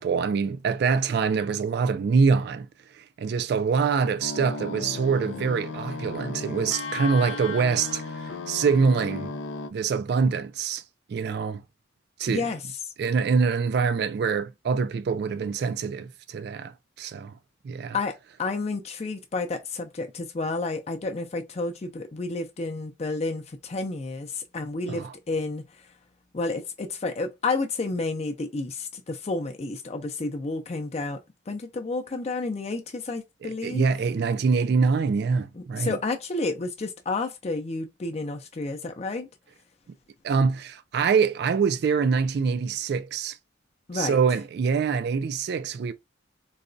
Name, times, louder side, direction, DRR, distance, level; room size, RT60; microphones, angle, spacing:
voice 1, 0.0-2.7 2.9-9.3 9.7-10.8 11.1-11.6 12.2-12.5 13.0-16.7 17.0-17.3 17.6-18.0 24.9-25.1 33.4-36.0 40.2-43.4 43.9-45.9, right 5 dB, 60° right, 0.3 m, -25 dB
sound 1, 4.2-9.7, left 3 dB, 85° left, 0.5 m, -35 dB
voice 2, 12.3-12.6 17.9-25.9 26.3-33.8 35.5-39.3 43.9-44.2, left 3 dB, 35° left, 0.4 m, -31 dB
4.0 x 2.2 x 2.5 m
head